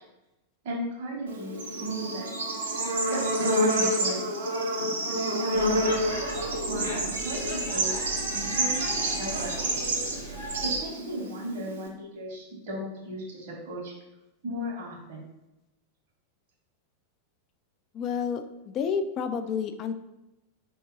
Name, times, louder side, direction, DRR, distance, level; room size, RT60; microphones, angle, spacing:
voice 1, 0.6-2.3 3.0-4.5 5.1-5.9 6.7-9.8 10.6-13.9 14.4-15.2, right 1 dB, 50° right, -2 dB, 1.3 m, -36 dB
Bird / Insect, 1.3-11.9, right 1 dB, 65° right, 1.1 m, -28 dB
Speech / Shout / Subway metro underground, 5.5-10.8, right 1 dB, 90° right, 1.2 m, -36 dB
voice 2, 17.9-19.9, left 6 dB, 30° left, 8 dB, 0.3 m, -30 dB
4.3 x 2.8 x 3.9 m, 0.94 s
figure-of-eight pair, 90°, 0 cm